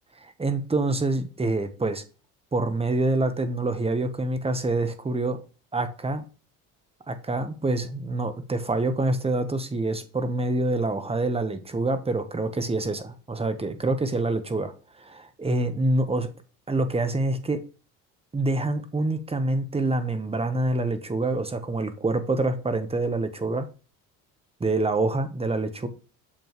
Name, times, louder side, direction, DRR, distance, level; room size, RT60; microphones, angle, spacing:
voice 1, 0.2-2.0 2.5-5.4 5.7-6.2 7.1-14.7 15.0-16.3 16.7-17.6 18.3-23.7 24.6-25.9, right 2 dB, 15° right, 1.0 m, -26 dB
7.1 x 5.2 x 3.1 m
supercardioid pair, 85°, 35 cm